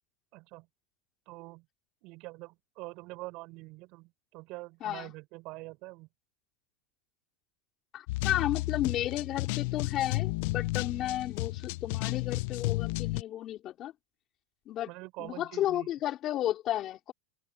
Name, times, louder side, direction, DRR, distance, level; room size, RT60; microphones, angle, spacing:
voice 1, 0.3-0.7 1.3-1.7 2.0-6.1 14.9-15.9, right 23 dB, 50° right, 6.0 m, -45 dB
voice 2, 4.8-5.1 7.9-13.9 14.7-14.9 15.2-17.1, left 12 dB, 35° left, 4.6 m, -33 dB
sound 1, 8.1-13.2, left 21 dB, 60° left, 0.6 m, -32 dB
supercardioid pair, 135°, 0 cm